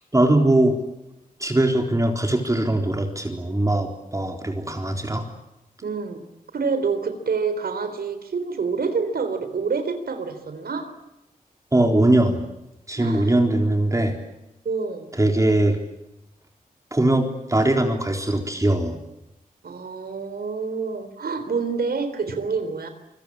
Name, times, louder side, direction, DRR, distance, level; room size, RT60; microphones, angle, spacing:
voice 1, 0.1-0.8 1.4-5.3 11.7-12.5 12.9-14.2 15.2-15.8 16.9-19.0, right 1 dB, 20° right, 3 dB, 4.0 m, -21 dB
voice 2, 5.8-6.3 6.5-10.9 13.0-13.3 14.6-15.1 19.6-22.9, right 5 dB, 85° right, 9 dB, 3.8 m, -27 dB
26.5 x 25.0 x 8.7 m, 0.92 s
wide cardioid pair, 85°, 15 cm